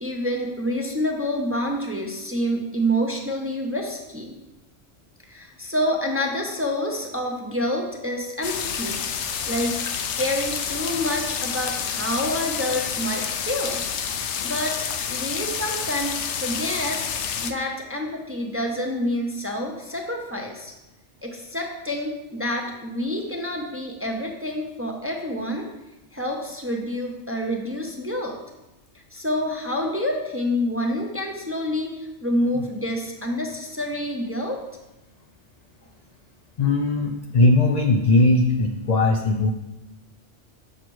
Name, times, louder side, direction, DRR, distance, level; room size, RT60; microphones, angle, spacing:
voice 1, 0.0-4.3 5.3-9.8 10.2-13.8 14.2-20.7 21.2-25.7 26.1-28.4 29.1-34.6, equal, 15° right, 1 dB, 0.5 m, -28 dB
sound 1, 8.4-17.5, left 7 dB, 75° left, 0.9 m, -29 dB
voice 2, 36.6-39.5, left 2 dB, 60° left, 3 dB, 0.4 m, -19 dB
7.2 x 6.4 x 3.1 m, 0.99 s
omnidirectional pair, 1.2 m